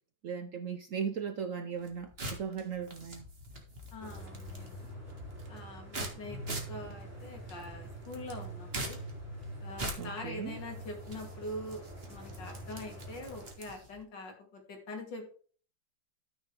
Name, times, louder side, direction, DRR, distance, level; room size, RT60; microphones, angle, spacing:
voice 1, 0.2-3.2 10.0-10.6, right 7 dB, 60° right, 0.9 m, -37 dB
sound 1, 1.7-14.0, right 1 dB, 35° right, 1.9 m, -44 dB
voice 2, 3.9-4.9 5.5-9.0 9.6-11.8 12.1-15.3, left 1 dB, 70° left, 3.1 m, -44 dB
sound 2, 4.0-13.5, right 1 dB, 10° right, 3.0 m, -45 dB
13.0 x 6.3 x 3.3 m
omnidirectional pair, 2.0 m